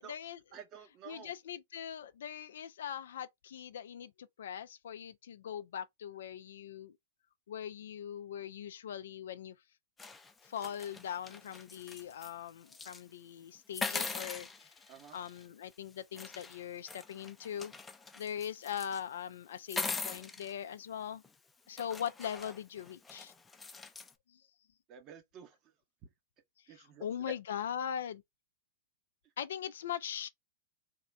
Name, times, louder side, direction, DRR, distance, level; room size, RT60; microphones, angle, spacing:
voice 1, 0.0-0.4 0.8-6.9 7.5-9.5 10.5-14.7 15.1-17.7 18.2-21.2 21.7-23.3 26.7-28.2 29.4-30.3, left 9 dB, 65° left, 0.3 m, -41 dB
voice 2, 0.5-1.3 14.9-15.2 24.9-25.6 26.7-27.3, right 6 dB, 35° right, 0.8 m, -50 dB
sound 1, 10.0-12.3 12.7-13.0 13.7-15.5 16.1-19.0 19.6-20.5 21.2-21.3 21.8-24.1, left 4 dB, 15° left, 0.5 m, -42 dB
3.6 x 2.4 x 3.1 m
hypercardioid pair, 105°, 0 cm